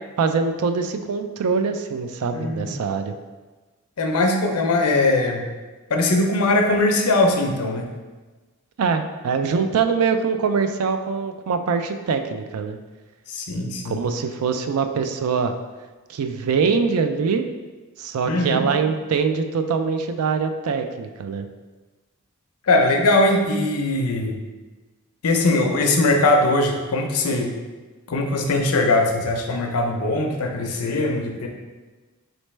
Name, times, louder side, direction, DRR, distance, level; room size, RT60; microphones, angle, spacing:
voice 1, 0.2-3.1 8.8-12.8 13.8-15.5 16.1-17.4 18.0-21.5, right 5 dB, 80° right, 7 dB, 0.4 m, -23 dB
voice 2, 2.3-2.7 4.0-5.5 5.9-7.9 13.3-14.0 18.3-18.6 22.7-24.3 25.2-27.6 28.1-31.5, left 2 dB, 85° left, 3 dB, 0.6 m, -20 dB
4.0 x 3.2 x 3.2 m, 1.3 s
head